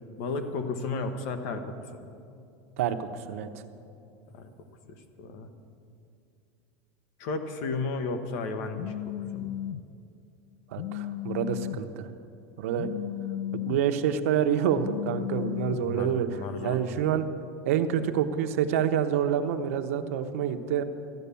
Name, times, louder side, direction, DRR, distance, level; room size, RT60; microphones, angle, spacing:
voice 1, 0.2-2.1 4.3-4.5 5.2-5.5 7.2-9.0 9.3-9.5 15.8-16.8, left 3 dB, 50° left, 8 dB, 1.1 m, -33 dB
voice 2, 2.8-3.6 10.7-12.1 12.6-12.9 13.7-17.2 17.6-20.8, right 9 dB, 90° right, 8 dB, 0.9 m, -27 dB
Telephone, 8.8-9.8 10.8-11.8 12.8-13.8 14.8-15.8, left 13 dB, 70° left, 0.4 m, -34 dB
13.5 x 10.0 x 7.0 m, 2.5 s
supercardioid pair, 175°, 7 cm